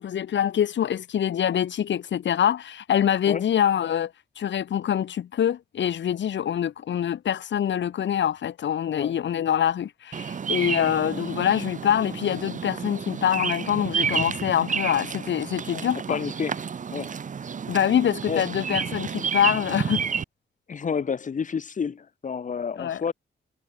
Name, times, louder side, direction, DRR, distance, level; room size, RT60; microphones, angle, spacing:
voice 1, 0.0-16.2 17.7-20.0 22.8-23.1, left 9 dB, 85° left, 3.5 m, -25 dB
Bird vocalization bird call bird song, 10.1-20.2, right 6 dB, 45° right, 2.2 m, -30 dB
voice 2, 16.1-16.6 16.9-17.1 18.3-18.4 20.7-23.1, left 6 dB, 45° left, 6.1 m, -29 dB
wide cardioid pair, 170°, 18 cm